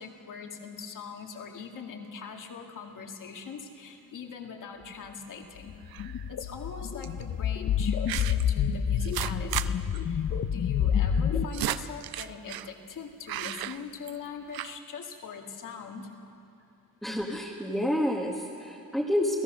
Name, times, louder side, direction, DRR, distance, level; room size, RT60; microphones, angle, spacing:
voice 1, 0.0-5.7 6.3-10.2 10.5-16.1, left 6 dB, 60° left, 2 dB, 2.2 m, -42 dB
sound 1, 5.7-11.4, left 8 dB, 45° left, 0.8 m, -28 dB
sound 2, 5.9-6.3 7.0-7.2 8.1-8.5 9.0-9.7 9.9-10.0 10.3-10.4 11.1-12.7 13.3-14.3 14.5-14.7, right 13 dB, 90° right, 0.6 m, -34 dB
voice 2, 17.0-19.4, left 1 dB, ahead, -2 dB, 1.4 m, -29 dB
28.0 x 17.0 x 6.2 m, 2.7 s
wide cardioid pair, 170°, 35 cm